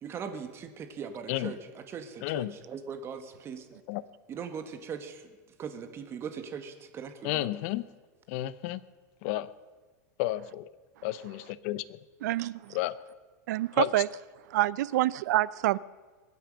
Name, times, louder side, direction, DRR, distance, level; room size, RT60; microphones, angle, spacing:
voice 1, 0.0-3.8 4.3-5.2 5.6-7.5, right 6 dB, 25° right, 1.6 m, -40 dB
voice 2, 2.2-2.6 3.9-4.0 7.2-7.8 8.3-8.8 9.2-9.5 10.2-10.7 11.0-12.0 12.7-12.9 13.8-13.9, left 16 dB, 55° left, 0.7 m, -31 dB
voice 3, 12.2-12.8 13.5-14.1 14.5-15.8, right 16 dB, 70° right, 0.5 m, -27 dB
22.0 x 9.4 x 6.5 m
supercardioid pair, 145°, 9 cm